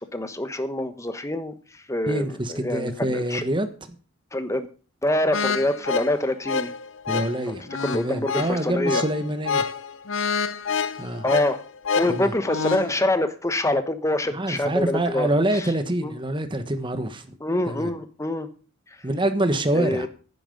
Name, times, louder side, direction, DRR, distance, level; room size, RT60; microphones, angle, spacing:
voice 1, 0.1-1.5 1.9-2.2 2.5-3.4 4.3-4.7 5.0-6.7 7.8-9.0 11.2-11.6 11.9-15.3 15.5-15.6 16.0-16.1 17.4-18.5 19.7-20.1, left 1 dB, 15° left, 9 dB, 1.1 m, -25 dB
voice 2, 2.1-3.7 7.1-9.6 11.0-11.2 12.1-12.3 14.3-17.3 17.7-17.9 19.0-20.1, right 1 dB, 25° right, 9 dB, 1.3 m, -26 dB
sound 1, 5.3-12.9, left 5 dB, 70° left, 0.8 m, -28 dB
11.5 x 9.9 x 5.3 m, 0.37 s
head